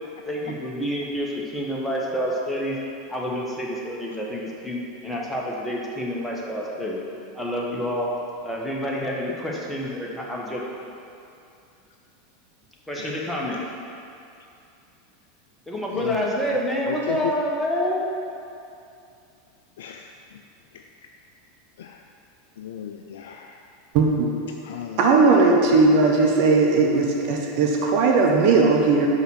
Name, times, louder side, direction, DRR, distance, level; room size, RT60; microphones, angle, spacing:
voice 1, 0.2-2.8 3.1-7.0 7.3-8.1 8.4-10.6 12.9-13.6 15.7-18.0, equal, ahead, -4 dB, 1.4 m, -28 dB
voice 2, 15.9-16.3 16.9-17.3 19.8-20.1 20.7-20.8 21.8-22.0 22.6-23.6 24.6-25.3, left 11 dB, 65° left, 4 dB, 0.3 m, -34 dB
voice 3, 23.9-24.4 25.0-29.1, right 3 dB, 50° right, 0 dB, 0.8 m, -18 dB
5.6 x 5.3 x 6.2 m, 2.6 s
figure-of-eight pair, 85°, 0 cm